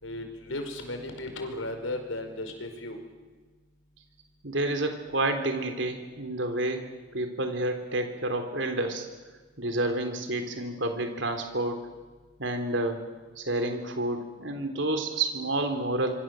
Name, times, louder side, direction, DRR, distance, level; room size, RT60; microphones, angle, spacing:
voice 1, 0.0-3.0, left 1 dB, 80° left, 5 dB, 5.0 m, -35 dB
voice 2, 4.4-6.9 7.1-9.1 9.6-11.9 12.4-13.0 13.4-16.1, right 2 dB, 65° right, 6 dB, 3.7 m, -29 dB
26.5 x 24.0 x 7.8 m, 1.3 s
head